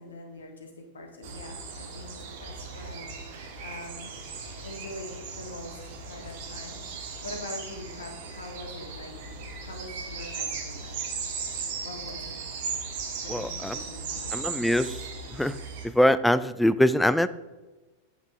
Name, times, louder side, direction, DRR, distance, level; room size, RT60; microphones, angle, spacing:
voice 1, 0.0-4.1 4.6-11.0 11.8-12.3 13.2-14.4, left 2 dB, 70° left, 2 dB, 1.8 m, -43 dB
sound 1, 1.2-15.9, right 5 dB, 50° right, 1.4 m, -37 dB
voice 2, 13.3-13.8 14.3-15.0 15.3-15.6 15.9-17.3, left 1 dB, 5° left, 14 dB, 0.4 m, -23 dB
9.2 x 8.1 x 3.5 m, 1.2 s
figure-of-eight pair, 90°, 0 cm